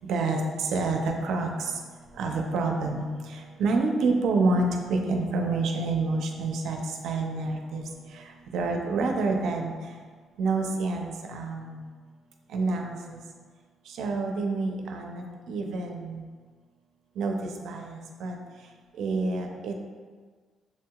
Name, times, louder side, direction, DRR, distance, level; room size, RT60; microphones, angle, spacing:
voice 1, 0.0-1.8 2.1-9.7 10.4-11.9 12.5-13.2 13.9-16.2 17.2-18.4 19.0-19.7, right 3 dB, 80° right, 3 dB, 0.5 m, -28 dB
7.0 x 2.8 x 2.3 m, 1.5 s
cardioid pair, 90°, 0 cm